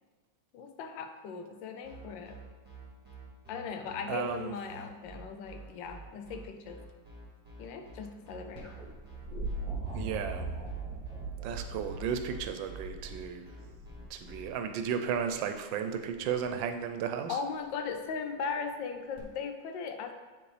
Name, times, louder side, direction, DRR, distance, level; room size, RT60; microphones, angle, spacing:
voice 1, 0.5-2.4 3.5-6.8 7.6-8.8 17.3-20.1, left 5 dB, 90° left, 6 dB, 1.3 m, -38 dB
sound 1, 1.8-14.4, right 3 dB, 5° right, 1.7 m, -49 dB
voice 2, 4.1-4.5 9.9-10.5 11.4-13.4 14.1-17.4, right 7 dB, 85° right, 7 dB, 1.3 m, -34 dB
sound 2, 8.5-14.5 16.1-16.6 19.2-19.3, right 2 dB, 25° right, 1.4 m, -39 dB
9.4 x 4.1 x 3.3 m, 1.3 s
omnidirectional pair, 2.0 m